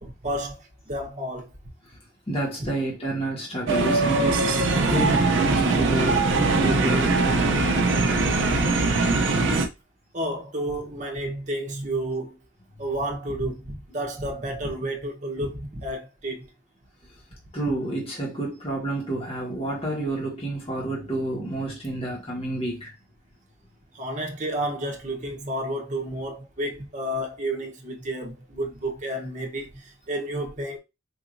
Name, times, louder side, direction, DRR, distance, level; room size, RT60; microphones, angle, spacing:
voice 1, 0.0-1.5 4.9-5.1 10.1-12.4 12.8-16.5 23.9-30.8, right 1 dB, 35° right, 0.9 m, -31 dB
voice 2, 2.3-7.6 17.5-22.9, right 2 dB, 30° left, 1.5 m, -29 dB
sound 1, 3.7-9.7, right 3 dB, 70° right, 0.6 m, -21 dB
4.6 x 2.8 x 2.6 m
head